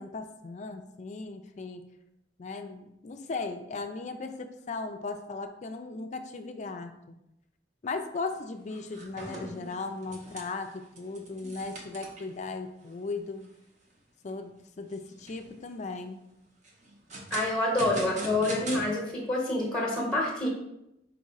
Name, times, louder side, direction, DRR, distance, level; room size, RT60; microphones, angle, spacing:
voice 1, 0.0-1.9 2.4-7.2 7.8-13.5 14.2-16.2, left 3 dB, 40° left, 7 dB, 0.4 m, -37 dB
sound 1, 8.2-8.3 8.7-12.4 12.9-13.0 13.4-13.5 14.0-14.4 15.0-15.6 16.6-18.8, right 1 dB, 45° right, 0.7 m, -42 dB
voice 2, 17.3-20.5, left 1 dB, 5° left, -4 dB, 0.9 m, -27 dB
4.5 x 2.4 x 4.1 m, 0.85 s
head